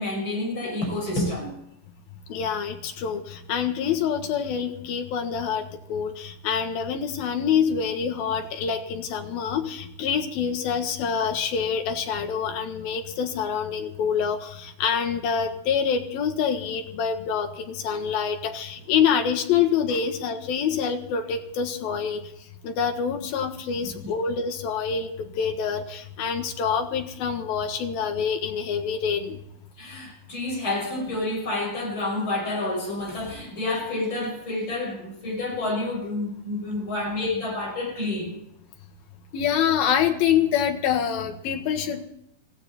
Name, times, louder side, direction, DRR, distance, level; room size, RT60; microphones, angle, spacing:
voice 1, 0.0-1.6 23.8-24.1 29.8-38.3, left 2 dB, 35° left, 6.5 m, -29 dB
voice 2, 2.3-22.2 22.6-29.4 39.3-42.1, left 7 dB, 90° left, 3.4 m, -26 dB
20.0 x 15.5 x 4.3 m
omnidirectional pair, 4.1 m